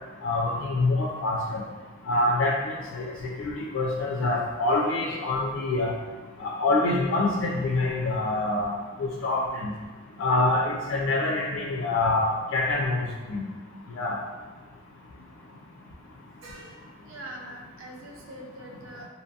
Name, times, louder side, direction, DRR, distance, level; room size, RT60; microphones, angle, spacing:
voice 1, 0.2-1.6 2.1-2.5 2.9-5.9 6.4-8.7 9.0-9.7 10.2-13.0 13.3-13.5 14.0-14.2, left 2 dB, 70° left, -3 dB, 0.3 m, -25 dB
voice 2, 16.4-16.7 17.0-19.1, right 1 dB, 75° right, -1 dB, 0.5 m, -43 dB
2.7 x 2.3 x 2.6 m, 1.3 s
head